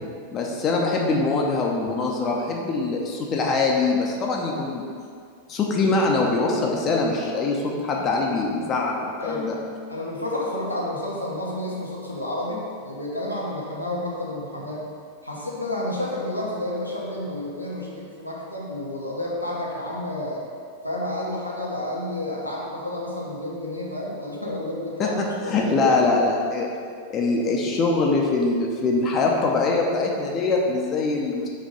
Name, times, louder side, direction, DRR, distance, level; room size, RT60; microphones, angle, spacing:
voice 1, 0.3-4.9 5.5-9.6 25.0-25.1 25.5-26.7 27.1-31.5, left 3 dB, 30° left, -1 dB, 0.7 m, -23 dB
voice 2, 9.2-9.6 9.9-14.8 15.2-20.4 20.8-26.0, left 1 dB, 90° left, -5 dB, 1.0 m, -30 dB
5.3 x 3.4 x 5.3 m, 2.2 s
figure-of-eight pair, 90°, 0 cm